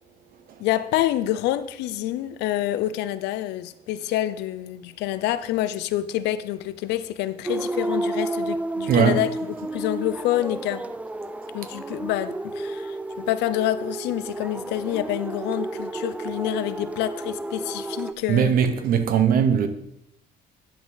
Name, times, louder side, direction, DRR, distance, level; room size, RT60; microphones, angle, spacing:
voice 1, 0.6-10.8 11.5-18.5, left 13 dB, 85° left, 0.6 m, -27 dB
sound 1, 7.4-18.1, right 2 dB, 10° right, 0.3 m, -31 dB
voice 2, 8.9-9.2 18.3-19.7, right 7 dB, 60° right, 1.1 m, -19 dB
10.5 x 6.0 x 4.0 m
cardioid pair, 110°, 17 cm